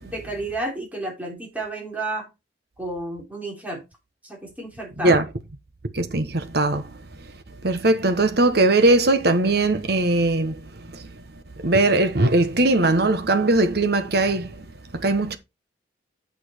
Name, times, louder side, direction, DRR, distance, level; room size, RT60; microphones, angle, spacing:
voice 1, 0.0-2.3 2.8-3.8 4.2-5.2, right 2 dB, 10° right, 3.5 m, -31 dB
voice 2, 5.9-6.9 7.6-10.6 10.9-11.1 11.6-14.7 14.9-15.4, right 2 dB, 60° right, 1.2 m, -20 dB
8.5 x 5.9 x 4.4 m
head